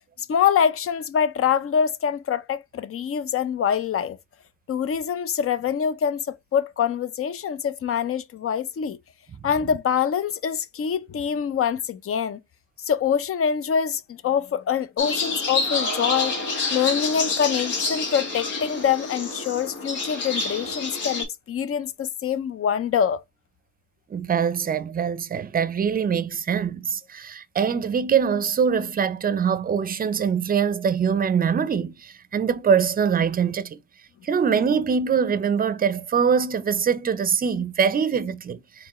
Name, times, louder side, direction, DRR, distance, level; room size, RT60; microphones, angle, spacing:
voice 1, 0.3-4.2 4.7-9.0 9.4-12.4 12.8-16.4 16.7-23.2, left 8 dB, 50° left, 0.6 m, -25 dB
sound 1, 15.0-21.2, left 3 dB, 80° left, 1.9 m, -28 dB
voice 2, 24.1-33.8 34.2-38.6, right 7 dB, 30° right, 0.5 m, -23 dB
4.3 x 3.3 x 3.0 m
cardioid pair, 90°, 30 cm